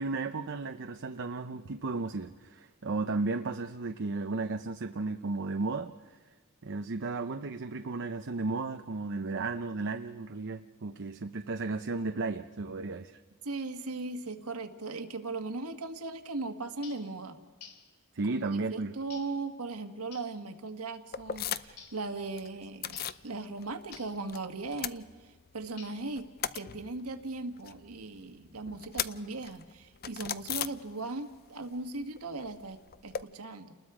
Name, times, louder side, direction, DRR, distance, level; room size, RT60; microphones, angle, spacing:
voice 1, 0.0-6.2 6.6-13.2 18.1-18.9, right 3 dB, 55° right, 6 dB, 0.7 m, -34 dB
voice 2, 13.4-17.4 18.5-33.7, right 3 dB, 70° right, 6 dB, 1.6 m, -38 dB
sound 1, 16.8-17.1 17.6-17.9 19.1-19.4 20.1-20.4 21.8-22.1 22.9-23.2 23.9-24.2 25.8-26.2, left 7 dB, 90° left, 2.4 m, -51 dB
sound 2, 21.1-21.9 22.2-23.3 23.6-24.4 24.6-25.7 26.0-31.4 31.6-33.2, left 9 dB, 45° left, 0.6 m, -39 dB
30.0 x 20.5 x 4.9 m, 1.4 s
head